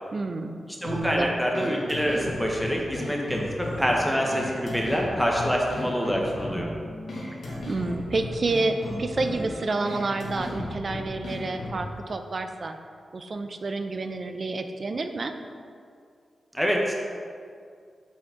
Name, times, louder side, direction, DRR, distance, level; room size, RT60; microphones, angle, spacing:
voice 1, 0.1-1.3 7.4-12.8 13.1-15.3, right 3 dB, 45° right, 7 dB, 0.4 m, -29 dB
voice 2, 0.8-6.7 16.5-16.9, equal, ahead, -1 dB, 0.8 m, -26 dB
sound 1, 0.9-11.9, left 1 dB, 85° left, 1.3 m, -35 dB
7.1 x 4.5 x 3.7 m, 2.2 s
wide cardioid pair, 95°, 0 cm